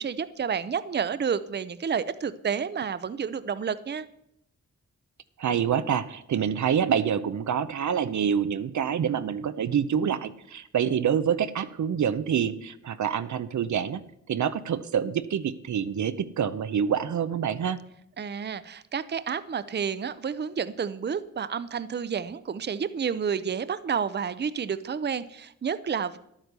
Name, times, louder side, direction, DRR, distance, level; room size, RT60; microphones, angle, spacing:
voice 1, 0.0-4.1 18.2-26.2, right 7 dB, 35° right, 14 dB, 0.6 m, -30 dB
voice 2, 5.4-14.0 14.3-17.8, right 8 dB, 70° right, 12 dB, 0.7 m, -26 dB
11.0 x 9.0 x 6.7 m, 0.76 s
cardioid pair, 75°, 30 cm